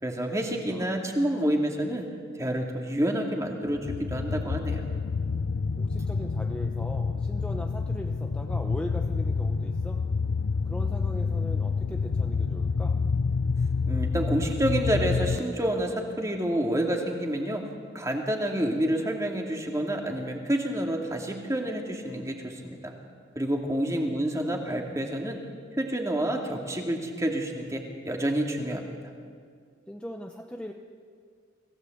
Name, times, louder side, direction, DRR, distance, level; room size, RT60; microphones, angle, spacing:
voice 1, 0.0-2.1 2.4-4.8 13.9-17.6 17.9-22.9 23.4-25.4 25.8-29.0, right 1 dB, 15° right, 2 dB, 2.4 m, -28 dB
voice 2, 0.7-1.0 5.8-10.0 10.6-13.0 23.9-24.2 29.9-30.7, equal, 5° left, 2 dB, 0.9 m, -40 dB
sound 1, 3.7-15.4, left 4 dB, 90° left, 0.6 m, -28 dB
25.0 x 16.5 x 7.9 m, 2.1 s
head